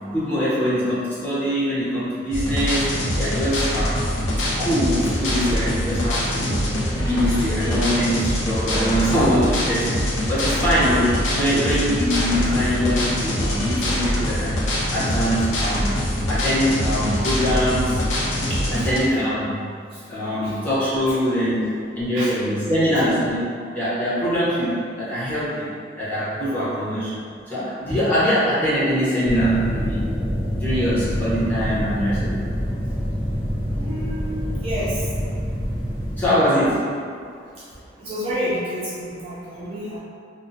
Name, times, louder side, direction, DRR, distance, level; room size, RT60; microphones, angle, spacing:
voice 1, 0.1-2.9 3.2-4.0 4.3-6.7 7.0-14.6 14.9-15.9 16.3-18.0 18.5-19.6 20.1-23.5 23.7-25.7 26.0-27.2 27.5-30.1 30.6-32.4 36.2-36.8, equal, 10° left, -12 dB, 0.8 m, -23 dB
sound 1, 2.3-19.0, left 1 dB, 75° left, 0.5 m, -24 dB
voice 2, 18.7-19.0 20.3-20.5 22.2-22.3 22.9-23.0 33.8-34.4 34.6-35.1 38.0-40.0, equal, 30° right, -10 dB, 0.4 m, -29 dB
sound 2, 29.2-36.3, equal, 55° left, 0.8 m, -26 dB
2.6 x 2.1 x 2.6 m, 2.2 s
head